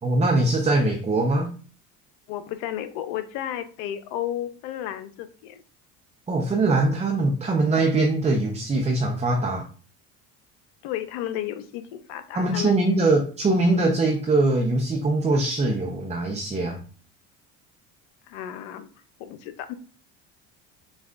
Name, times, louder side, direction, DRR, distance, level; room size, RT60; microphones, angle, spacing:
voice 1, 0.0-1.5 6.3-9.6 12.3-16.8, right 2 dB, 20° right, 2 dB, 0.7 m, -22 dB
voice 2, 2.3-5.6 10.8-12.8 18.3-18.9 19.2-19.7, left 11 dB, 75° left, 10 dB, 0.7 m, -33 dB
6.4 x 2.3 x 2.4 m, 0.40 s
supercardioid pair, 85°, 36 cm